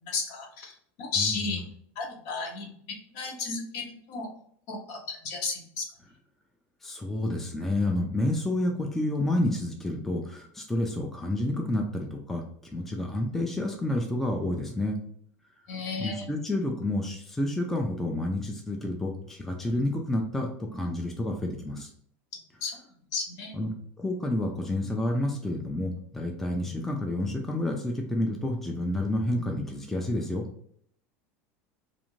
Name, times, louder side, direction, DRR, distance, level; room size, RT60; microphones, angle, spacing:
voice 1, 0.0-1.6 2.0-2.7 3.1-4.3 4.7-5.9 15.7-16.3 22.6-22.8 23.1-23.6, left 4 dB, 60° left, 1 dB, 0.8 m, -33 dB
voice 2, 6.8-12.4 12.7-15.0 16.0-21.9 23.5-30.5, left 1 dB, 5° left, 1 dB, 0.3 m, -29 dB
2.5 x 2.4 x 3.0 m, 0.65 s
supercardioid pair, 145°, 7 cm